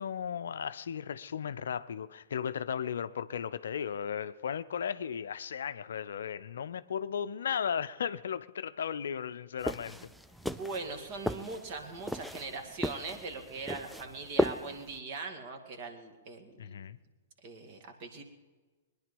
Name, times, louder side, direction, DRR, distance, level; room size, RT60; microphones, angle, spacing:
voice 1, 0.0-10.1 16.6-17.0, left 8 dB, 65° left, 0.5 m, -35 dB
sound 1, 9.6-15.0, equal, ahead, 0.4 m, -36 dB
voice 2, 10.4-16.8 17.4-18.2, right 3 dB, 45° right, 2.2 m, -41 dB
22.0 x 10.5 x 5.4 m
figure-of-eight pair, 110°, 0 cm